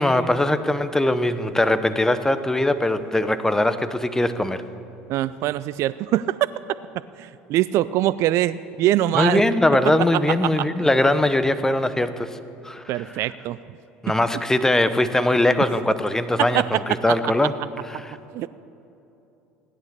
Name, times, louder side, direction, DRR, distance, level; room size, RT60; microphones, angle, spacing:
voice 1, 0.0-4.6 9.1-12.4 12.6-13.1 14.0-17.5 17.9-18.2, left 1 dB, 10° left, 12 dB, 0.9 m, -21 dB
voice 2, 5.1-6.4 7.2-9.4 10.4-10.7 12.9-13.6 16.5-16.6 17.1-17.2 18.3-18.5, right 14 dB, 55° right, 16 dB, 0.4 m, -23 dB
16.0 x 10.5 x 6.7 m, 2.8 s
hypercardioid pair, 75°, 6 cm